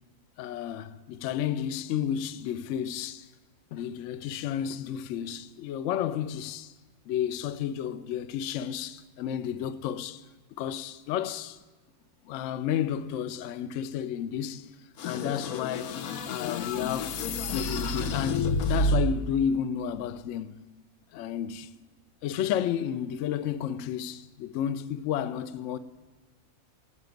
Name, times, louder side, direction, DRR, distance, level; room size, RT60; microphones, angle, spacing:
voice 1, 0.4-3.3 3.7-6.7 7.1-10.2 10.5-11.6 12.2-14.7 15.0-16.0 16.3-17.2 17.5-20.6 21.1-21.8 22.2-25.8, left 9 dB, 70° left, 0.8 m, -32 dB
sound 1, 15.0-19.3, left 1 dB, 90° left, 1.3 m, -29 dB
17.0 x 5.9 x 9.0 m
omnidirectional pair, 1.5 m